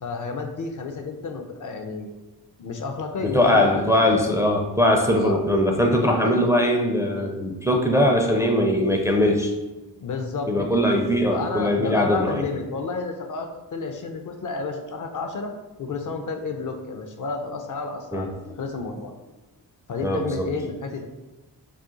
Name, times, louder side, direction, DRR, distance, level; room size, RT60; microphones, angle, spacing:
voice 1, 0.0-2.1 2.6-3.9 5.1-5.4 6.0-6.5 7.1-7.4 10.0-10.9 11.3-15.5 15.8-19.1 19.9-21.1, left 4 dB, 50° left, 5 dB, 0.5 m, -31 dB
voice 2, 3.2-9.5 10.5-12.4 18.1-18.3 20.0-20.4, left 1 dB, 10° right, 1 dB, 0.4 m, -21 dB
2.4 x 2.3 x 3.8 m, 1.1 s
cardioid pair, 45°, 43 cm